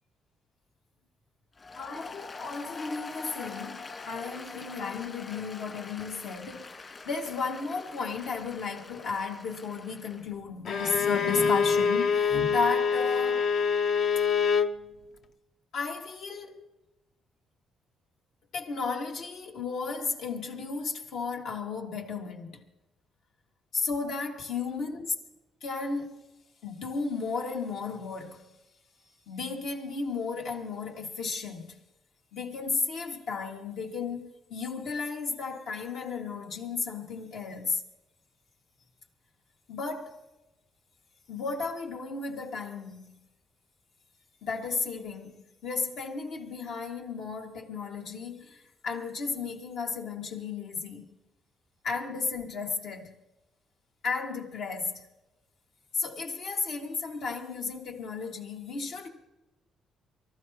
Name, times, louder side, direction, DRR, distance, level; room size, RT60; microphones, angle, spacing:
Applause, 1.5-10.3, left 3 dB, 35° left, 2.1 m, -44 dB
voice 1, 1.7-13.5 15.7-16.7 18.5-22.6 23.7-25.1 25.6-26.2 26.6-28.4 29.3-31.8 32.3-37.8 39.7-40.2 41.3-43.2 44.4-51.1 51.8-53.2 54.0-55.1 55.9-59.1, left 4 dB, 75° left, 2.3 m, -34 dB
Bowed string instrument, 10.7-14.8, left 6 dB, 60° left, 0.7 m, -25 dB
24.0 x 14.5 x 3.1 m
cardioid pair, 90°, 0 cm